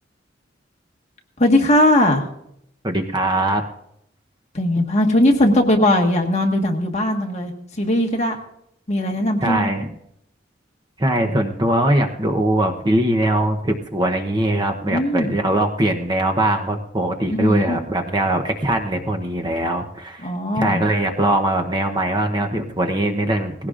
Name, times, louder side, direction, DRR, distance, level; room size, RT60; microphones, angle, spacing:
voice 1, 1.4-2.2 4.5-8.3 8.9-9.7 14.8-15.3 17.3-17.8 20.2-20.8, left 1 dB, 35° left, 2 dB, 1.5 m, -19 dB
voice 2, 2.8-3.6 9.4-9.9 11.0-23.7, right 1 dB, 25° right, 4 dB, 0.8 m, -21 dB
19.0 x 16.5 x 2.5 m, 0.75 s
head